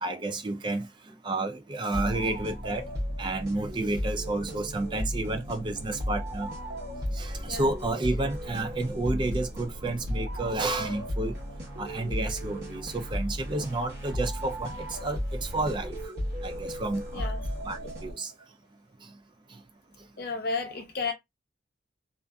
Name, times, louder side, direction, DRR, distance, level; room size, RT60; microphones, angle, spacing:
voice 1, 0.0-2.9 3.2-6.5 7.1-11.3 11.8-16.0 16.4-17.3 17.6-18.3 19.5-19.6, right 2 dB, 25° right, 0.3 m, -31 dB
sound 1, 1.9-18.4, equal, 55° right, 1.0 m, -35 dB
voice 2, 17.1-17.4 20.2-21.1, left 4 dB, 50° left, 0.7 m, -32 dB
2.5 x 2.4 x 2.2 m
head